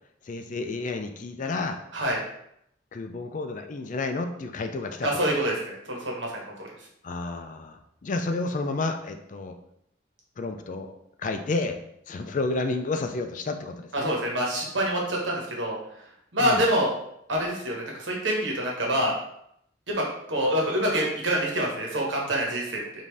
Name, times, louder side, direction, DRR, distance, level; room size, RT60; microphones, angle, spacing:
voice 1, 0.3-1.8 2.9-5.4 7.0-9.6 10.4-11.8 12.1-14.1 16.4-16.6, left 3 dB, 45° left, 6 dB, 0.4 m, -31 dB
voice 2, 5.0-6.7 13.9-15.8 16.3-16.9 17.3-19.1 19.9-22.8, equal, 80° right, -1 dB, 1.3 m, -26 dB
5.1 x 2.7 x 3.3 m, 0.75 s
head